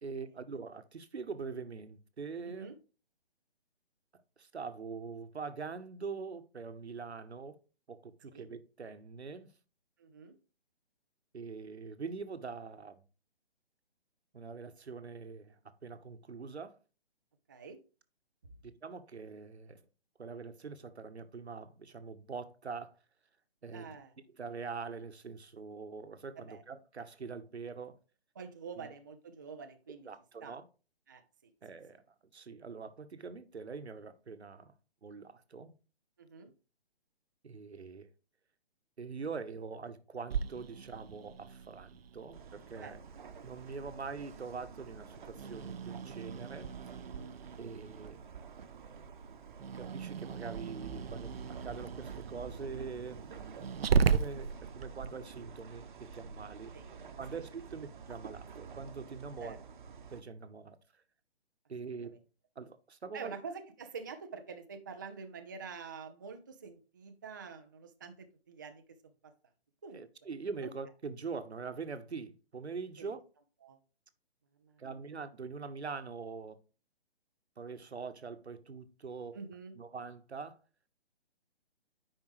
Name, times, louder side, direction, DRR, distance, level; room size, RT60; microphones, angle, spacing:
voice 1, 0.0-2.7 4.4-7.6 7.9-9.5 11.3-13.0 14.3-16.8 18.6-19.8 20.2-23.0 23.6-24.0 24.4-28.0 28.8-28.9 30.0-30.7 31.6-34.7 35.0-35.7 37.4-38.1 39.0-43.0 43.4-46.7 47.6-48.2 49.7-53.7 54.0-56.8 57.2-59.5 60.1-60.8 61.7-62.2 62.6-63.3 69.9-73.2 74.8-76.6 77.6-79.4 79.7-80.6, right 5 dB, 80° right, 1.1 m, -43 dB
voice 2, 2.4-2.8 8.3-8.4 10.0-10.4 17.5-17.8 23.7-24.1 26.4-26.6 28.4-30.1 30.4-30.6 31.1-31.5 36.2-36.5 42.8-42.9 47.0-47.3 56.7-57.0 57.3-57.4 59.4-59.6 62.0-62.2 63.1-69.1 69.8-70.0 70.6-70.7 73.0-73.1 73.6-73.8 74.6-74.8 79.3-79.8, right 5 dB, 20° right, 0.4 m, -47 dB
Growling, 40.3-55.1, right 6 dB, 65° right, 0.6 m, -37 dB
sound 1, 42.3-60.2, right 5 dB, 50° right, 1.0 m, -49 dB
8.9 x 5.3 x 3.1 m
figure-of-eight pair, 145°, 32 cm